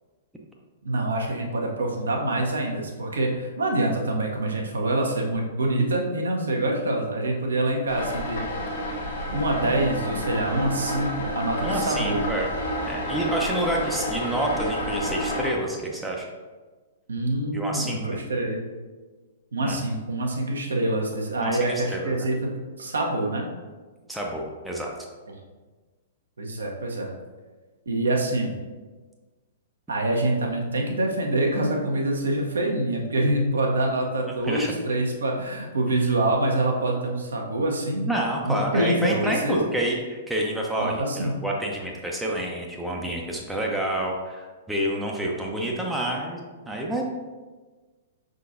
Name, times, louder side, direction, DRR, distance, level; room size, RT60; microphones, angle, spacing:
voice 1, 0.8-8.4 9.3-12.2 17.1-18.6 19.5-22.5 22.8-23.5 26.4-27.1 27.9-28.5 29.9-38.1 38.4-39.6 40.8-41.4, right 1 dB, 70° right, 0 dB, 0.8 m, -25 dB
sound 1, 7.9-15.5, equal, 55° left, 0.9 m, -30 dB
voice 2, 11.6-12.5 12.8-16.3 17.5-18.2 19.6-19.8 21.4-22.3 24.1-24.9 34.4-34.8 38.1-47.0, right 1 dB, 5° right, -2 dB, 0.6 m, -28 dB
5.5 x 3.8 x 2.6 m, 1.3 s
figure-of-eight pair, 110°, 0 cm